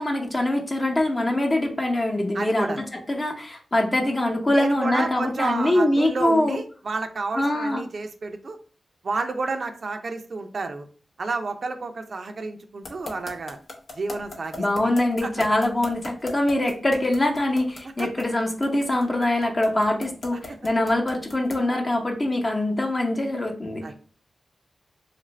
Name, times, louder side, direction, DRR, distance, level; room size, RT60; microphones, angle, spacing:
voice 1, 0.0-6.6 7.3-7.8 14.6-23.8, left 1 dB, 30° left, 2 dB, 0.8 m, -23 dB
voice 2, 2.3-2.8 4.5-8.6 9.0-10.9 11.2-13.6 13.9-14.9 15.2-15.4 18.0-18.1 23.8-23.9, right 3 dB, 60° right, 6 dB, 0.4 m, -30 dB
sound 1, 12.8-21.7, left 2 dB, 75° left, 0.8 m, -38 dB
3.1 x 2.4 x 3.1 m, 0.41 s
cardioid pair, 65°, 0 cm